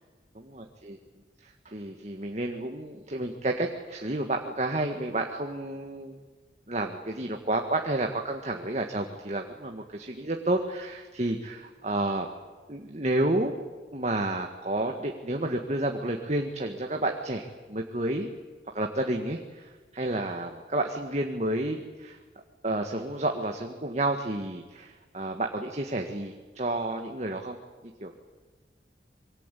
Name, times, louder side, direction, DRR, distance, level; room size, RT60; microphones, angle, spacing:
voice 1, 0.5-1.0 1.4-6.2 6.7-12.3 12.7-13.5 13.9-18.3 18.7-22.2 22.6-27.6 28.0-28.2, right 1 dB, 40° right, 3 dB, 1.9 m, -30 dB
26.5 x 23.5 x 8.5 m, 1.4 s
head